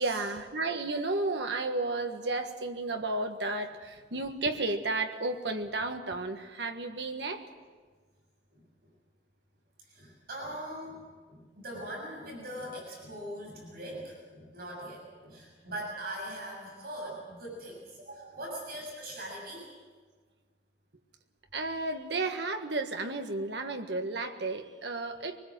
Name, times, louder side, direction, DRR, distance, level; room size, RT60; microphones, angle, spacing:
voice 1, 0.0-7.4 21.5-25.4, right 2 dB, 80° right, 5 dB, 1.7 m, -32 dB
voice 2, 9.9-19.7, right 1 dB, 60° right, -2 dB, 7.1 m, -41 dB
24.0 x 20.0 x 7.5 m, 1.4 s
head